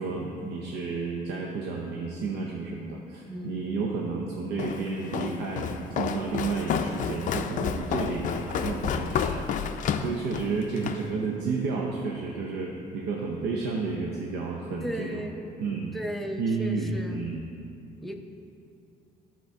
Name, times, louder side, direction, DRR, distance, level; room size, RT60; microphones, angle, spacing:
voice 1, 0.0-9.4 10.0-15.3 15.6-15.9 16.4-17.4, right 4 dB, 85° right, 0 dB, 0.7 m, -31 dB
voice 2, 3.3-3.6 9.9-10.1 14.8-15.4 15.9-17.2 18.0-18.2, right 1 dB, ahead, 2 dB, 0.6 m, -35 dB
Walk footsteps, 4.6-11.1, left 7 dB, 50° left, 0.4 m, -30 dB
11.0 x 3.8 x 4.7 m, 2.7 s
cardioid pair, 110°, 17 cm